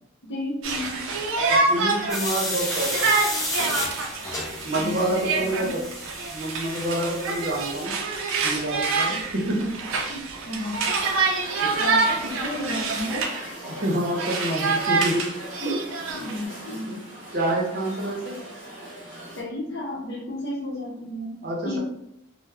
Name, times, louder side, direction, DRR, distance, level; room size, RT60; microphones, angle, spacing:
voice 1, 0.2-1.0 4.7-5.8 9.1-9.6 10.4-10.9 11.8-13.3 16.1-17.0 19.4-21.3 21.6-21.8, left 1 dB, 55° left, -1 dB, 0.6 m, -32 dB
Conversation, 0.6-13.4 13.8-16.4, right 4 dB, 75° right, 0.4 m, -26 dB
voice 2, 1.5-3.1 4.6-5.7 6.3-7.9 8.4-9.8 10.1-10.2 11.6-11.7 13.8-15.2 15.6-15.8 16.9-17.0 17.3-18.3 21.4-21.8, right 1 dB, 50° right, -2 dB, 0.7 m, -27 dB
sound 1, 2.1-7.8, left 1 dB, 15° left, 0.4 m, -32 dB
sound 2, 11.0-19.4, right 1 dB, 10° right, 1.0 m, -40 dB
2.2 x 2.0 x 3.3 m, 0.79 s
head